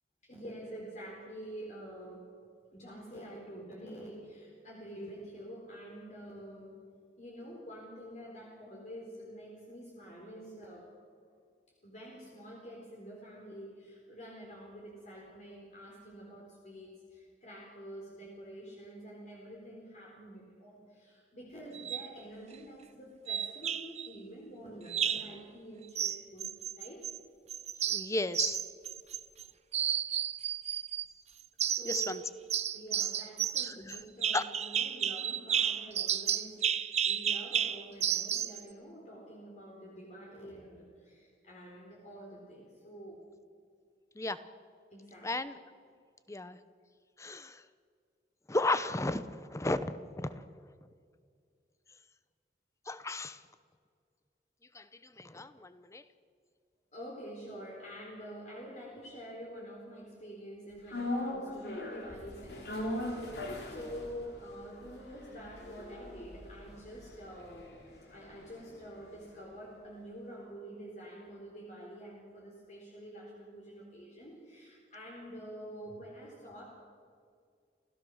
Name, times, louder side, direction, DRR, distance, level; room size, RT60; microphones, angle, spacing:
voice 1, 0.2-2.3 2.7-6.8 7.2-10.9 11.8-27.1 31.6-32.2 32.7-43.2 44.9-45.3 56.9-67.8 68.1-76.6, equal, 45° left, -2 dB, 4.0 m, -47 dB
sound 1, 21.7-22.1 23.3-24.1 24.9-25.3 25.9-27.2 27.5-29.4 29.7-31.1 31.6-32.2 32.5-38.6, right 9 dB, 40° right, 0.7 m, -32 dB
voice 2, 27.9-28.6 31.8-32.2 33.6-34.0 34.3-34.4 44.1-44.4 45.2-45.6 46.3-46.6 47.2-47.6 48.5-50.5 50.8-50.9 52.9-53.4 54.7-56.0, left 2 dB, 15° left, 13 dB, 0.8 m, -34 dB
sound 2, 60.9-69.2 69.5-69.6, left 1 dB, 65° left, 3.8 m, -40 dB
29.0 x 16.0 x 6.4 m, 2.2 s
head